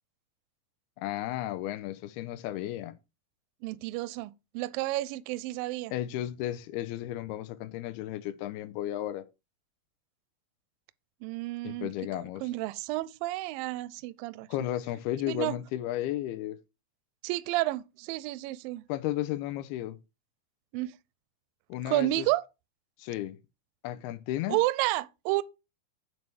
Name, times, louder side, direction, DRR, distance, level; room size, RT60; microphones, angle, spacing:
voice 1, 1.0-2.9 5.9-9.2 11.6-12.4 14.5-16.6 18.9-20.0 21.7-22.3 23.0-23.4 23.8-24.6, left 13 dB, 90° left, 2.7 m, -34 dB
voice 2, 3.6-5.9 11.2-14.5 15.3-15.6 17.2-18.8 20.7-20.9 21.9-22.4 24.5-25.4, right 18 dB, 80° right, 2.1 m, -31 dB
8.7 x 4.6 x 6.8 m
omnidirectional pair, 4.5 m